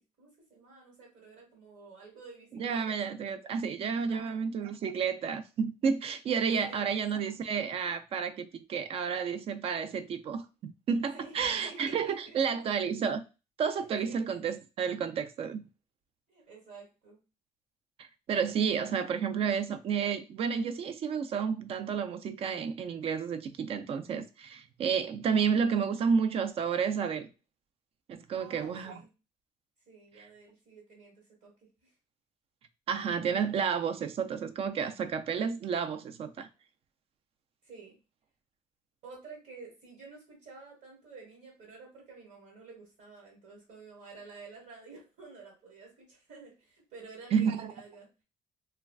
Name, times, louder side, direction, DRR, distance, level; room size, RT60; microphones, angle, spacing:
voice 1, 0.2-3.0 4.1-4.5 6.6-6.9 11.1-11.3 11.6-12.4 13.8-14.3 16.3-17.2 28.3-29.1 29.9-31.9 37.6-38.0 39.0-48.1, right 4 dB, 75° right, 1.6 m, -51 dB
voice 2, 2.6-13.2 13.6-15.7 18.0-27.3 28.1-29.0 30.2-30.3 32.9-36.5 47.3-47.7, right 6 dB, 45° right, 0.4 m, -31 dB
3.2 x 2.3 x 2.3 m
cardioid pair, 130°, 14 cm